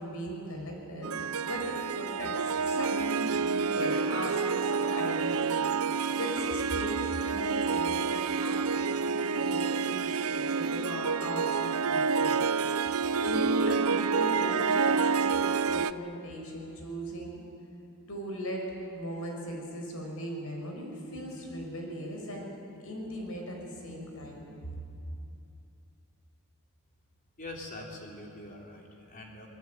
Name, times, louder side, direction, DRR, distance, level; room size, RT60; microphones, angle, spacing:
voice 1, 0.0-2.3 2.6-5.7 6.1-12.5 13.2-17.4 18.1-18.7 18.9-22.5 22.8-24.4 24.7-24.8, equal, 70° left, 1 dB, 5.8 m, -38 dB
Harp, 1.0-15.9, right 5 dB, 75° right, 0.6 m, -28 dB
voice 2, 27.4-29.5, left 2 dB, 40° left, 0 dB, 3.9 m, -44 dB
25.5 x 20.5 x 9.3 m, 2.7 s
head